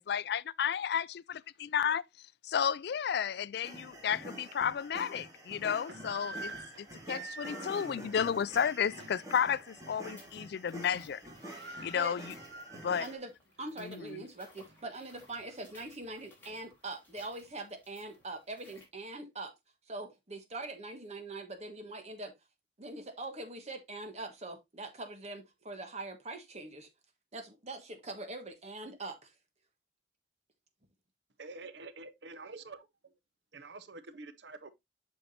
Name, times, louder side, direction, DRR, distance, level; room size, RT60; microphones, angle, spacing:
voice 1, 0.0-2.0 2.4-6.5 6.8-11.2 11.8-12.3 12.8-13.1 13.8-14.2, left 8 dB, 65° left, 0.4 m, -32 dB
sound 1, 3.6-13.2, right 1 dB, 20° right, 2.4 m, -48 dB
sound 2, 3.8-3.9 4.4-4.6 5.5-9.3 9.7-9.9 10.2-10.7 10.9-11.0 11.2-13.2 13.6-13.7 14.3-15.6, right 3 dB, 90° right, 2.1 m, -48 dB
sound 3, 7.3-18.9, left 2 dB, 10° left, 3.8 m, -62 dB
voice 2, 13.0-13.3 13.6-19.5 19.9-22.3 22.8-26.9 27.3-29.3, right 2 dB, 40° right, 1.7 m, -43 dB
voice 3, 31.4-33.2 33.5-34.7, right 3 dB, 75° right, 0.8 m, -47 dB
8.0 x 6.3 x 2.8 m
head